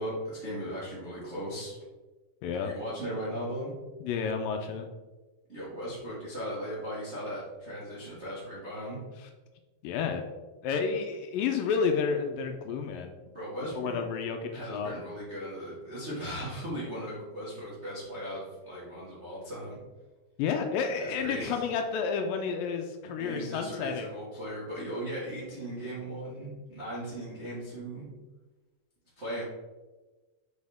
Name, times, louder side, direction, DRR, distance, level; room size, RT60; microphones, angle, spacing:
voice 1, 0.0-1.8 2.6-3.7 5.5-9.0 13.3-14.0 14.5-19.8 21.0-21.6 23.2-28.1 29.2-29.4, equal, 60° right, -8 dB, 0.6 m, -37 dB
voice 2, 4.0-4.9 9.2-9.3 9.8-10.3 10.6-13.1 13.8-14.9 20.4-24.1, left 6 dB, 80° left, 5 dB, 2.1 m, -30 dB
6.3 x 5.2 x 3.6 m, 1.2 s
omnidirectional pair, 4.2 m